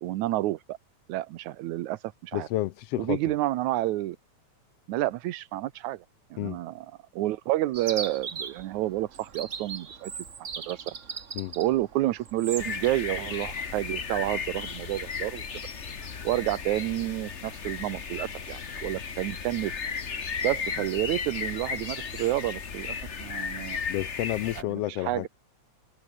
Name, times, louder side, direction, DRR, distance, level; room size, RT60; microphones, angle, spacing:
voice 1, 0.0-0.8 1.1-2.5 3.0-4.2 4.9-6.0 6.3-6.9 7.1-10.1 10.7-10.8 11.6-15.4 16.2-19.7 20.4-23.8 24.6-25.3, right 16 dB, 85° right, 2.3 m, -29 dB
voice 2, 2.3-3.2 6.4-6.6 11.3-11.5 23.9-25.3, left 15 dB, 75° left, 1.5 m, -30 dB
Chirp tweet, 7.7-12.9, right 6 dB, 40° right, 1.2 m, -39 dB
sound 1, 12.6-24.6, left 5 dB, 35° left, 1.1 m, -35 dB
omnidirectional pair, 3.3 m